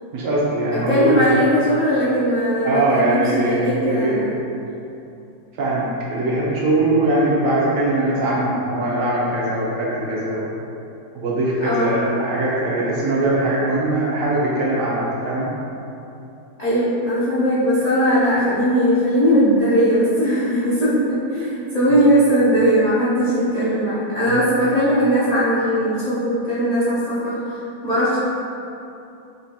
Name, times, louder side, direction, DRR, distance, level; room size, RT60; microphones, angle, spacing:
voice 1, 0.1-1.3 2.6-4.2 5.6-10.5 11.1-15.5 24.3-24.4, right 2 dB, 70° right, -6 dB, 0.8 m, -21 dB
voice 2, 0.7-4.3 11.6-12.0 16.6-27.6 27.8-28.2, equal, 85° left, -12 dB, 0.3 m, -19 dB
4.3 x 2.5 x 2.7 m, 2.8 s
omnidirectional pair, 1.8 m